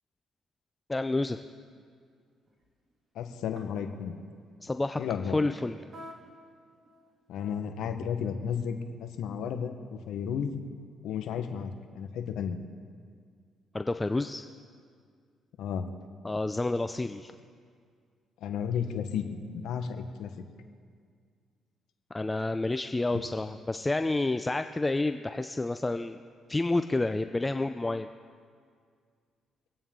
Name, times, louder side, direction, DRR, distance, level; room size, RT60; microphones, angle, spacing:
voice 1, 0.9-1.4 4.6-5.0 5.3-5.8 13.7-14.5 16.2-17.3 22.1-26.2 26.5-28.1, left 2 dB, 15° left, 9 dB, 0.4 m, -29 dB
sound 1, 1.7-1.9 2.5-2.9 3.5-3.9 5.9-6.5 6.7-7.6, equal, 40° right, 2.8 m, -48 dB
voice 2, 3.1-4.1 5.0-5.4 7.3-10.5 11.0-12.6 15.6-15.9 18.4-20.3 23.1-23.2, left 7 dB, 85° left, 7 dB, 1.1 m, -33 dB
25.5 x 9.1 x 3.7 m, 2.1 s
cardioid pair, 90°, 0 cm